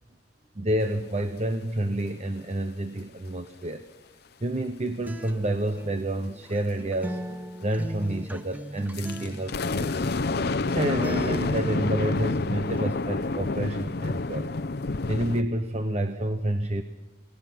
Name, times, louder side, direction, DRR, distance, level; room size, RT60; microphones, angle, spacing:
voice 1, 0.5-3.8 4.4-7.2 7.6-10.1 10.6-14.5 15.1-16.8, right 1 dB, 35° right, 8 dB, 1.0 m, -29 dB
Acoustic guitar, 5.0-13.0, equal, 10° right, 0.9 m, -40 dB
sound 1, 8.9-15.4, left 3 dB, 60° left, 0.7 m, -28 dB
28.5 x 19.0 x 6.1 m, 1.2 s
head